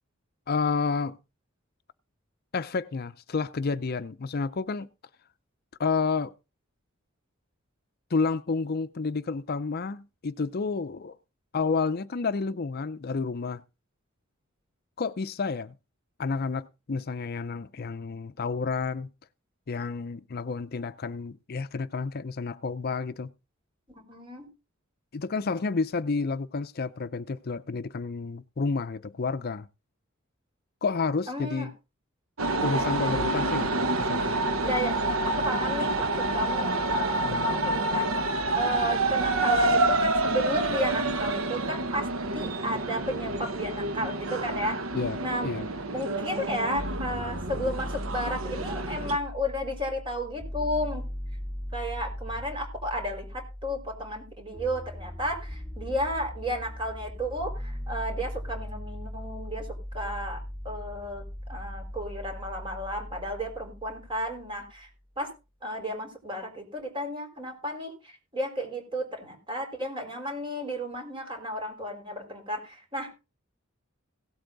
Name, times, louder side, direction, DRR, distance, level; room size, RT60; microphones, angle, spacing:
voice 1, 0.5-1.2 2.5-4.9 5.8-6.3 8.1-11.2 11.5-13.6 15.0-15.7 16.2-19.1 19.7-23.3 25.1-29.7 30.8-31.7 32.6-34.4 37.2-37.5 44.9-45.2 45.4-45.7, left 4 dB, 50° left, 0.5 m, -30 dB
voice 2, 23.9-24.5 31.3-31.7 32.5-33.2 34.6-35.0 35.2-38.1 38.5-42.1 42.3-44.8 45.2-45.5 45.9-51.1 51.7-59.7 59.9-61.2 61.5-64.9 65.2-65.3 65.6-73.1, equal, 25° right, 4.3 m, -33 dB
sound 1, 32.4-49.2, right 2 dB, 80° right, 1.1 m, -28 dB
sound 2, 46.8-64.7, equal, 5° right, 1.7 m, -39 dB
17.0 x 8.1 x 3.9 m
head